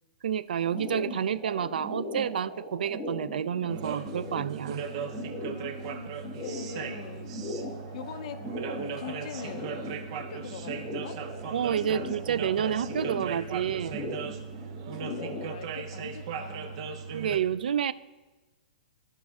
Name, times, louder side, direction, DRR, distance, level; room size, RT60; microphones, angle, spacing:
voice 1, 0.2-4.9 11.5-14.0 17.1-17.9, right 8 dB, 80° right, 16 dB, 0.4 m, -29 dB
sound 1, 0.6-15.5, left 1 dB, 10° left, 1.4 m, -39 dB
sound 2, 3.7-17.4, right 6 dB, 40° right, 0.7 m, -38 dB
voice 2, 5.5-7.4 7.9-9.8 10.1-11.3 14.9-17.0, left 7 dB, 45° left, 9 dB, 0.6 m, -43 dB
14.5 x 5.2 x 2.4 m, 1.2 s
hypercardioid pair, 170°, 5 cm